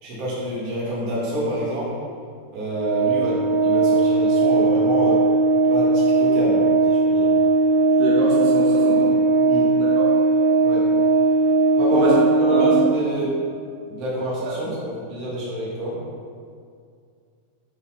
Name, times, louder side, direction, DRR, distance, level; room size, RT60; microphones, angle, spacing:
voice 1, 0.0-1.9 2.5-5.2 5.7-7.3 9.5-9.7 10.6-10.9 11.7-12.1 12.4-13.3 13.9-16.0, equal, 45° right, -8 dB, 3.0 m, -28 dB
Organ, 2.7-13.4, right 3 dB, 30° left, 1.6 m, -18 dB
voice 2, 8.0-9.1 9.8-10.1 11.9-12.1 12.4-12.8, right 1 dB, 80° right, -5 dB, 3.6 m, -25 dB
8.3 x 5.0 x 6.0 m, 2.2 s
omnidirectional pair, 4.7 m